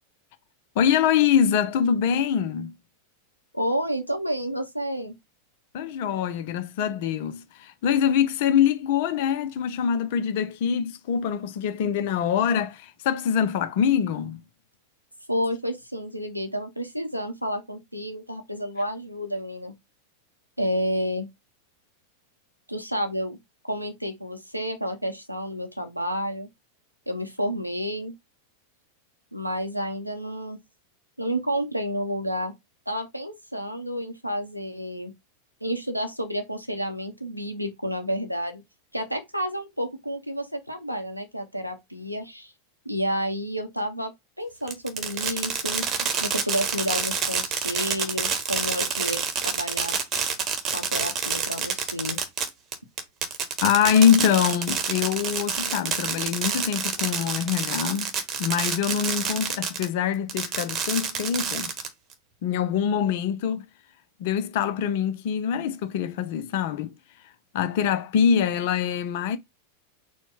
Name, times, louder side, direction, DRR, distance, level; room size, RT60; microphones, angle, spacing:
voice 1, 0.8-2.7 5.7-14.4 53.6-58.1 58.4-61.7 62.4-63.6 64.2-66.9 67.5-69.4, left 8 dB, 50° left, 0.6 m, -24 dB
voice 2, 3.5-5.1 15.3-19.7 20.6-21.3 22.7-23.4 23.7-26.5 27.1-28.1 29.3-30.6 31.2-32.5 32.9-35.1 35.6-38.6 38.9-42.5 42.8-44.1 44.4-45.9 46.2-50.0 50.7-52.2, equal, 90° right, 0.7 m, -30 dB
Fireworks, 44.7-59.9 60.3-62.1, right 6 dB, 30° right, 1.0 m, -28 dB
4.4 x 2.2 x 4.3 m
figure-of-eight pair, 90°, 0 cm